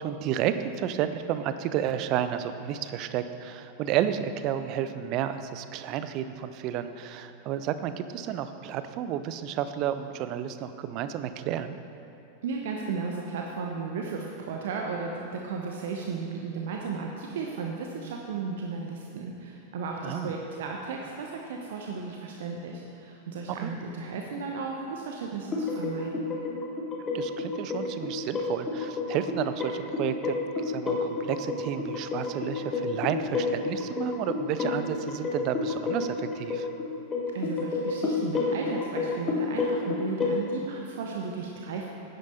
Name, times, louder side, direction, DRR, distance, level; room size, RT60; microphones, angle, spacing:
voice 1, 0.0-11.8 20.0-20.3 23.6-23.7 27.1-36.7, right 10 dB, 40° right, 11 dB, 0.5 m, -31 dB
voice 2, 12.4-26.3 37.3-41.9, right 4 dB, 55° right, 0 dB, 0.8 m, -35 dB
sound 1, 25.5-40.4, left 3 dB, 25° left, 1.4 m, -30 dB
10.5 x 9.5 x 4.2 m, 2.9 s
figure-of-eight pair, 90°, 0 cm